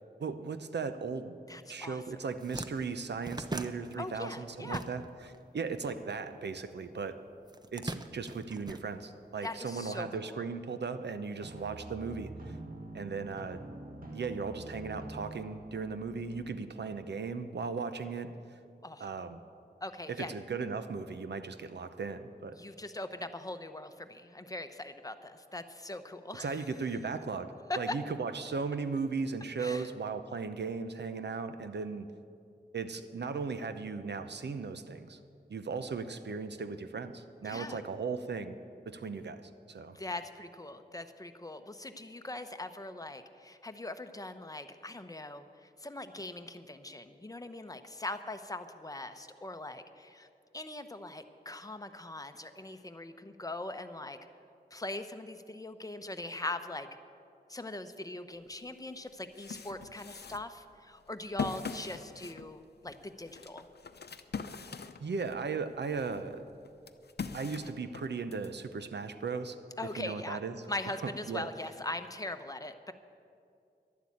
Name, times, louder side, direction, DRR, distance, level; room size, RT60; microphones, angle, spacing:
voice 1, 0.2-1.4 1.7-5.1 5.5-7.1 7.7-12.6 12.9-13.6 14.1-18.3 19.0-19.4 20.1-22.6 26.4-27.5 27.8-32.1 32.7-35.2 35.5-38.6 38.9-39.4 39.7-40.0 65.0-66.4 67.3-69.6 70.0-70.5 71.0-71.5, right 5 dB, 85° right, 10 dB, 0.8 m, -37 dB
voice 2, 1.5-2.0 4.0-4.8 9.4-10.4 18.8-19.1 19.8-20.3 22.5-26.6 27.7-27.9 29.6-29.9 37.4-37.8 39.9-50.3 50.5-54.2 54.7-56.9 57.5-63.7 69.8-70.4 70.7-72.9, left 2 dB, 20° left, 8 dB, 0.8 m, -41 dB
sound 1, 1.8-1.9 2.2-5.4 5.6-6.8 7.4-9.5, right 2 dB, 25° right, 0.7 m, -42 dB
sound 2, 11.4-16.6, right 1 dB, 55° right, 2.0 m, -46 dB
sound 3, 58.5-58.6 59.1-65.4 65.9-68.5, left 5 dB, 70° left, 0.7 m, -42 dB
12.0 x 11.5 x 8.5 m, 2.5 s
wide cardioid pair, 85°, 17 cm